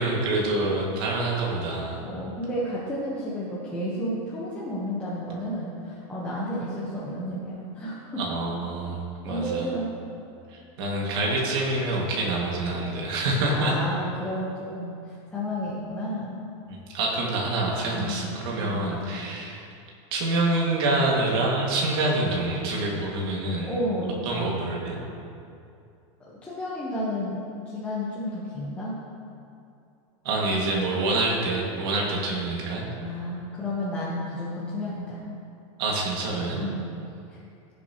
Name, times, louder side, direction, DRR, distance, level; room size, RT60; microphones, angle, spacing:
voice 1, 0.0-2.0 8.2-9.7 10.5-13.8 16.7-19.6 20.1-23.7 24.3-25.0 30.2-32.9 35.8-36.6, right 2 dB, 50° right, -3 dB, 2.1 m, -26 dB
voice 2, 2.0-8.2 9.3-9.9 13.3-16.4 17.9-18.3 18.6-18.9 23.6-24.7 26.2-28.9 33.0-35.2 36.6-36.8 37.3-37.4, equal, 10° left, -8 dB, 1.1 m, -32 dB
17.0 x 7.1 x 3.0 m, 2.6 s
supercardioid pair, 170°, 17 cm